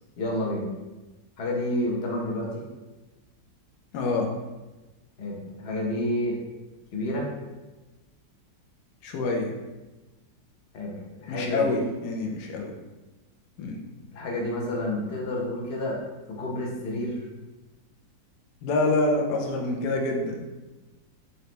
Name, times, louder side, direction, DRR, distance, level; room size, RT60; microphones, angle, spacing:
voice 1, 0.2-0.7 1.4-2.6 5.2-6.4 6.9-7.3 10.7-11.8 14.1-16.0 16.3-17.3, left 1 dB, 50° left, -2 dB, 0.7 m, -29 dB
voice 2, 3.9-4.3 9.0-9.5 11.3-12.7 13.6-13.8 18.6-20.5, left 2 dB, 70° left, 1 dB, 1.0 m, -26 dB
4.0 x 2.9 x 3.2 m, 1.1 s
omnidirectional pair, 2.1 m